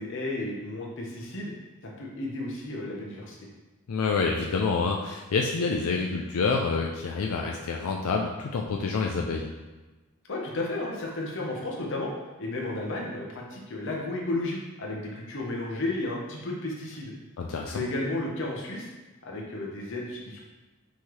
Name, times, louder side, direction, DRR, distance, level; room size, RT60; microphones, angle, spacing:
voice 1, 0.0-1.5 1.8-3.4 10.3-12.1 12.4-17.1 17.7-18.9 19.2-20.4, left 2 dB, 60° left, -2 dB, 0.8 m, -33 dB
voice 2, 3.9-9.5 17.4-17.8, left 4 dB, 85° left, 0 dB, 0.4 m, -27 dB
5.5 x 3.1 x 3.1 m, 1.2 s
head